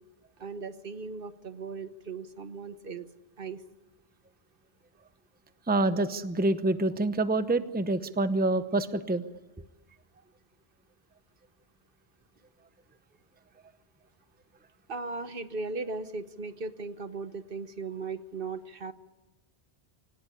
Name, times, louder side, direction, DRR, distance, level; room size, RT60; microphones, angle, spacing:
voice 1, 0.4-3.1 3.4-3.6 14.9-18.9, right 4 dB, 60° right, 12 dB, 1.2 m, -37 dB
voice 2, 5.7-9.2, right 2 dB, 10° right, 12 dB, 0.8 m, -26 dB
25.5 x 18.5 x 10.0 m, 1.1 s
omnidirectional pair, 1.1 m